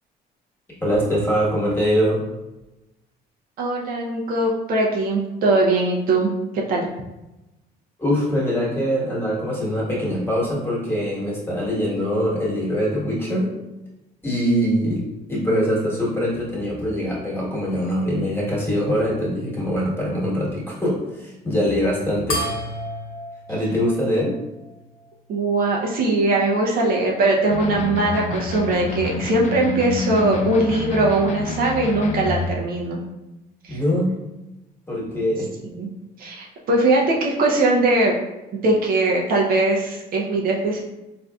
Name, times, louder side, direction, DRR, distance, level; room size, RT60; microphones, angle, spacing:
voice 1, 0.8-2.2 8.0-13.5 14.2-15.0 15.3-22.5 23.5-24.4 33.7-34.2 34.9-35.5, equal, 10° left, -6 dB, 1.3 m, -23 dB
voice 2, 3.6-6.9 25.3-33.0 33.6-33.8 35.6-35.9 36.2-38.1 38.5-40.8, right 2 dB, 60° right, -1 dB, 0.6 m, -21 dB
sound 1, 22.3-25.1, left 1 dB, 60° left, 0.8 m, -32 dB
sound 2, 27.5-32.6, left 4 dB, 45° left, 0.4 m, -28 dB
3.8 x 2.5 x 2.3 m, 1.0 s
cardioid pair, 110°, 17 cm